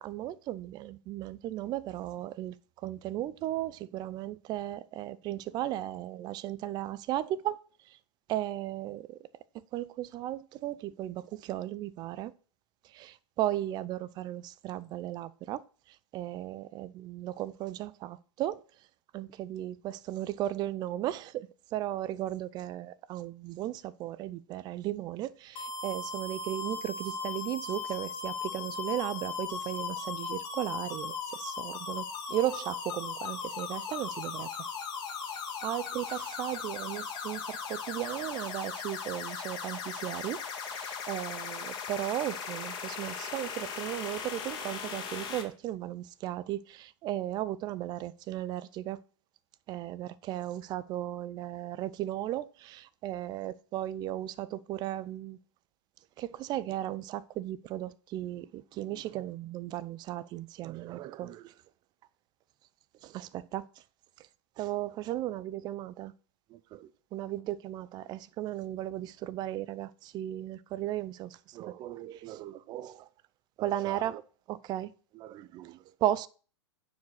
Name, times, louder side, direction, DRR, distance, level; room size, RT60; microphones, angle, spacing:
voice 1, 0.0-2.6 2.8-7.6 7.9-8.0 8.3-9.2 9.7-12.3 12.9-18.6 19.1-34.5 35.3-35.4 35.6-40.4 40.7-49.0 49.7-55.4 56.2-61.5 63.0-63.7 64.6-66.1 66.5-73.1 73.6-76.3, right 13 dB, 30° right, 0.5 m, -36 dB
sound 1, 25.6-45.4, left 5 dB, 30° left, 2.1 m, -38 dB
9.2 x 4.9 x 6.4 m
hypercardioid pair, 115°, 15 cm